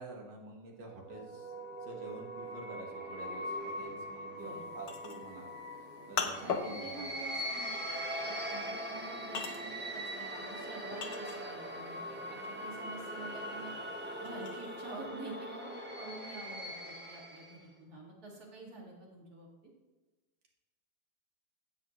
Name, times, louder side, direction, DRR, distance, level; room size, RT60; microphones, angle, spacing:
voice 1, 0.0-5.5 6.1-7.1, right 2 dB, 85° right, 0 dB, 2.1 m, -48 dB
sound 1, 0.9-17.7, equal, 10° right, 0.7 m, -41 dB
voice 2, 4.3-4.9 6.2-13.7 14.2-19.5, right 2 dB, 60° right, -2 dB, 2.6 m, -48 dB
sound 2, 4.4-11.8 12.1-15.0, left 5 dB, 65° left, 1.3 m, -40 dB
16.0 x 5.7 x 3.1 m, 1.2 s
omnidirectional pair, 1.9 m